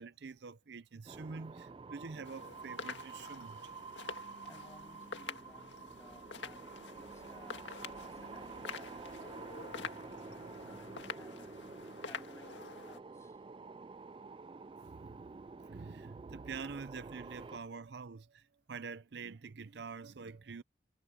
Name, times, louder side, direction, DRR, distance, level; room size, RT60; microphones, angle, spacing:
voice 1, 0.0-3.7 14.8-15.3 15.5-20.6, right 4 dB, 70° right, 0.6 m, -46 dB
sound 1, 1.1-17.6, right 4 dB, 30° right, 0.3 m, -49 dB
sound 2, 2.2-13.0, left 5 dB, 90° left, 1.9 m, -47 dB
voice 2, 4.4-11.6 12.0-13.5, left 1 dB, 15° left, 7.7 m, -60 dB
head